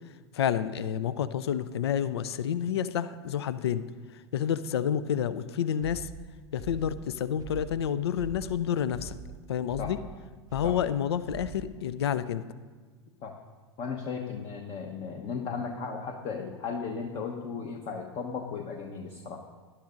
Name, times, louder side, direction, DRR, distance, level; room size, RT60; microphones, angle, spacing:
voice 1, 0.3-3.8 4.3-6.1 6.5-9.2 9.5-10.0 10.5-12.4, left 9 dB, 65° left, 15 dB, 0.5 m, -29 dB
sound 1, 5.8-11.9, right 6 dB, 25° right, 0.6 m, -44 dB
voice 2, 13.8-19.4, left 5 dB, 35° left, 4 dB, 1.1 m, -35 dB
19.5 x 11.0 x 2.6 m, 1.4 s
figure-of-eight pair, 85°, 15 cm